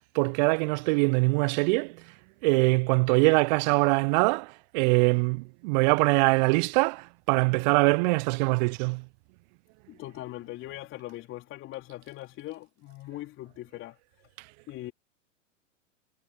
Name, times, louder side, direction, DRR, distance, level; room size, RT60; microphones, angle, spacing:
voice 1, 0.1-1.9 2.4-9.0, right 30 dB, 35° right, 0.8 m, -23 dB
voice 2, 9.9-14.0 14.7-14.9, left 16 dB, 30° left, 3.7 m, -40 dB
figure-of-eight pair, 100°, 39 cm